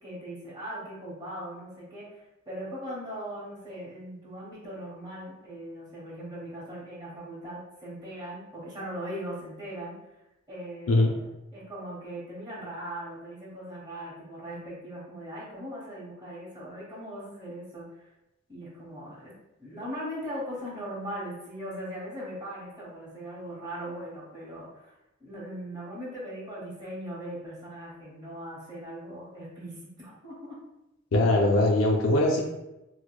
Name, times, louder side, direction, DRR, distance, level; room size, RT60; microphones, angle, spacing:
voice 1, 0.0-10.0 10.5-17.9 18.5-19.3 19.6-30.6, equal, 20° right, -7 dB, 1.0 m, -39 dB
voice 2, 10.9-11.2 31.1-32.4, left 2 dB, 75° left, -1 dB, 0.5 m, -22 dB
4.6 x 2.1 x 2.2 m, 0.95 s
head